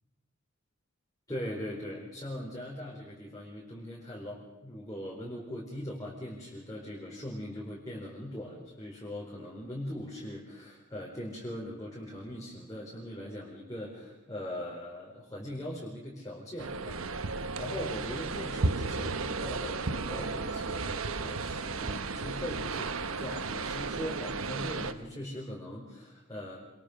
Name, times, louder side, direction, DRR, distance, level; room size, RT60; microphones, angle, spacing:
voice 1, 1.3-17.2 17.6-26.6, left 1 dB, 20° left, -4 dB, 4.5 m, -40 dB
sound 1, 16.6-24.9, right 3 dB, 75° right, 1.1 m, -34 dB
27.0 x 22.5 x 5.2 m, 1.1 s
head